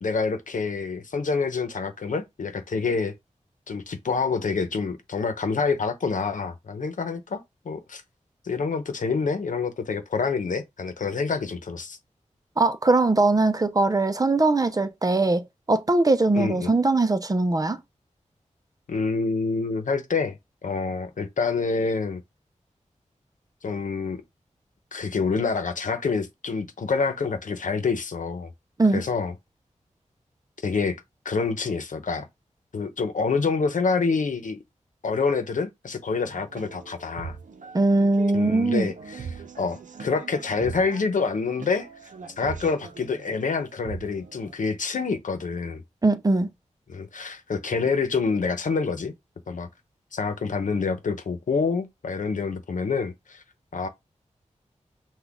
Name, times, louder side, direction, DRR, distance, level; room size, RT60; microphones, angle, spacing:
voice 1, 0.0-3.1 3.7-8.0 8.4-12.0 16.4-16.7 18.9-20.4 20.6-22.2 23.6-24.2 24.9-28.5 28.9-29.3 30.6-31.0 31.2-32.3 32.7-34.6 35.0-37.4 38.3-41.9 42.4-45.8 46.9-49.1 49.5-49.7 50.1-53.4 53.7-53.9, left 4 dB, 90° left, 0.9 m, -27 dB
voice 2, 12.6-17.8 28.8-29.0 37.7-38.9 46.0-46.5, right 2 dB, 30° right, 0.6 m, -21 dB
sound 1, 36.3-44.5, right 5 dB, 85° right, 0.7 m, -41 dB
6.0 x 2.4 x 3.5 m
wide cardioid pair, 100°, 13 cm